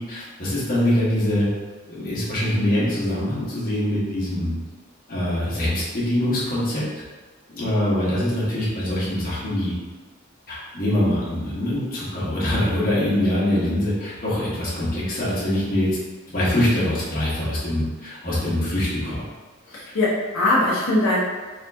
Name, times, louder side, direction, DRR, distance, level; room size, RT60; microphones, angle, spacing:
voice 1, 0.0-1.5 1.9-4.5 5.1-6.8 7.5-9.7 10.5-16.0 16.3-19.2, left 1 dB, 45° left, -8 dB, 1.3 m, -23 dB
voice 2, 19.7-21.2, left 2 dB, 80° left, -8 dB, 1.0 m, -21 dB
3.7 x 2.9 x 3.5 m, 1.3 s
head